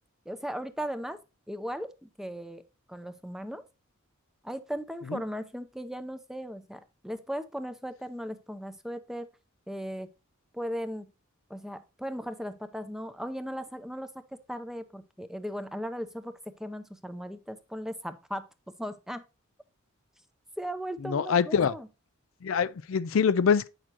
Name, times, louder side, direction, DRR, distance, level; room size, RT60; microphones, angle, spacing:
voice 1, 0.3-1.2 1.5-2.6 2.9-3.6 4.4-9.3 9.7-10.1 10.5-11.1 11.5-18.5 18.8-19.2 20.6-21.9, equal, ahead, 0.6 m, -37 dB
voice 2, 21.0-21.7 22.4-23.7, left 6 dB, 70° left, 0.4 m, -24 dB
8.7 x 6.5 x 2.9 m
head